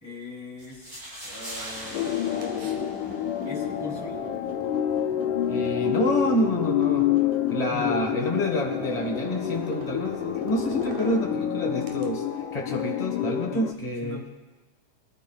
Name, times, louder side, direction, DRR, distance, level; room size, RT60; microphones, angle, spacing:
voice 1, 0.0-2.8 3.1-4.3 7.7-8.5 13.5-13.7 14.0-14.3, left 2 dB, 5° left, -3 dB, 2.7 m, -41 dB
sound 1, 0.6-3.6, equal, 15° right, 5.6 m, -41 dB
sound 2, 1.8-12.1, right 2 dB, 85° right, 2.9 m, -41 dB
sound 3, 1.9-13.7, left 10 dB, 90° left, 2.2 m, -28 dB
voice 2, 5.5-7.1 7.5-12.2 12.5-14.3, left 1 dB, 70° left, 0 dB, 0.3 m, -28 dB
24.0 x 12.5 x 2.4 m, 1.2 s
omnidirectional pair, 3.6 m